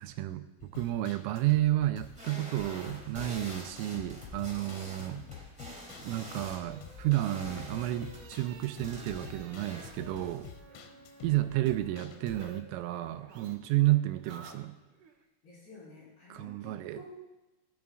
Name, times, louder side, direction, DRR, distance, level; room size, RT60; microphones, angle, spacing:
voice 1, 0.0-5.2 6.0-10.5 11.2-14.8 16.3-17.0, right 15 dB, 85° right, 9 dB, 3.1 m, -31 dB
sound 1, 0.6-13.8 14.1-14.2 14.6-14.7, left 9 dB, 90° left, 3.6 m, -49 dB
sound 2, 2.0-10.5, equal, 5° right, 0.9 m, -47 dB
voice 2, 5.0-5.3 10.7-11.0 13.6-13.8 15.4-17.1, left 2 dB, 55° left, -6 dB, 5.8 m, -53 dB
sound 3, 6.0-12.6 12.9-15.1, right 4 dB, 60° right, 2.2 m, -53 dB
20.0 x 12.5 x 2.4 m, 1.0 s
omnidirectional pair, 5.9 m